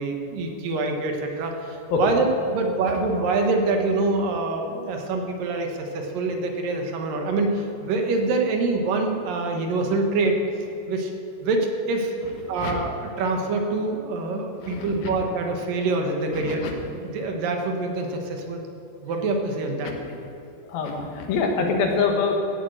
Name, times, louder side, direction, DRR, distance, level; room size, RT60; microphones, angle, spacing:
voice 1, 0.0-10.4 10.9-11.1 11.4-12.1 12.5-16.6 17.0-18.6 19.0-19.9, right 3 dB, 70° right, 3 dB, 2.9 m, -25 dB
voice 2, 14.6-15.1 16.3-16.7 20.7-22.4, left 5 dB, 75° left, 2 dB, 3.4 m, -25 dB
15.5 x 8.2 x 7.8 m, 3.0 s
omnidirectional pair, 4.3 m